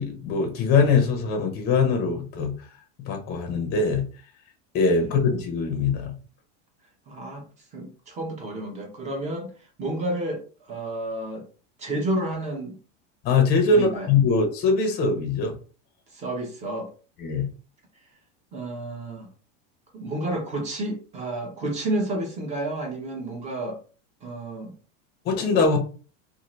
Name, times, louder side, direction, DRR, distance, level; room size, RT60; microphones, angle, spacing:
voice 1, 0.0-2.5 3.0-4.1 4.7-6.1 13.2-15.6 17.2-17.5 25.2-25.8, left 4 dB, 25° left, 4 dB, 0.6 m, -22 dB
voice 2, 7.1-7.5 7.7-9.5 9.8-11.4 11.8-12.8 13.7-14.1 16.1-16.9 18.5-19.3 19.9-23.8 24.2-24.7, right 1 dB, 20° right, 2 dB, 0.6 m, -30 dB
2.6 x 2.5 x 3.0 m, 0.37 s
supercardioid pair, 165°, 37 cm